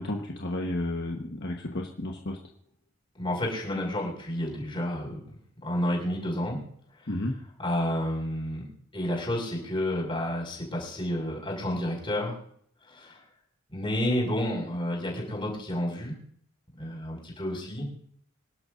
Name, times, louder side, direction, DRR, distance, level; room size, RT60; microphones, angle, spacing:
voice 1, 0.0-2.4 7.1-7.3, left 1 dB, 55° left, 1 dB, 1.3 m, -32 dB
voice 2, 3.2-5.2 5.6-6.6 7.6-12.4 12.9-13.2 13.7-16.2 16.8-18.0, left 1 dB, 25° left, -2 dB, 6.0 m, -30 dB
27.0 x 11.5 x 2.6 m, 0.64 s
head